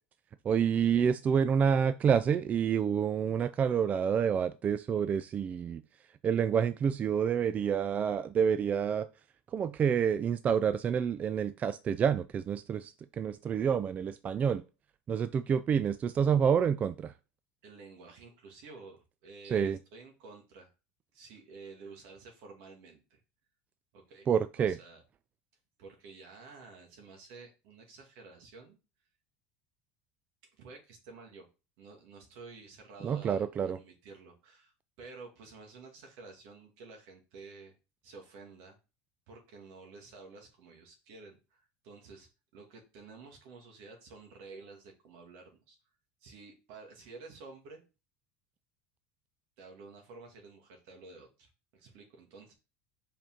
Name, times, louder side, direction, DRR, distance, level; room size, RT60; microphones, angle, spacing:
voice 1, 0.5-5.8 6.2-9.1 9.5-14.6 15.1-17.1 19.5-19.8 24.3-24.8 33.0-33.8, right 7 dB, 30° right, 0.3 m, -28 dB
voice 2, 17.6-20.7 21.1-23.2 23.9-24.3 24.6-25.0 25.8-28.8 30.6-31.5 31.8-37.7 38.0-38.8 39.3-42.3 42.5-45.8 46.2-47.8 49.6-52.5, right 4 dB, 70° right, 2.5 m, -51 dB
5.2 x 5.0 x 3.8 m
supercardioid pair, 115°, 5 cm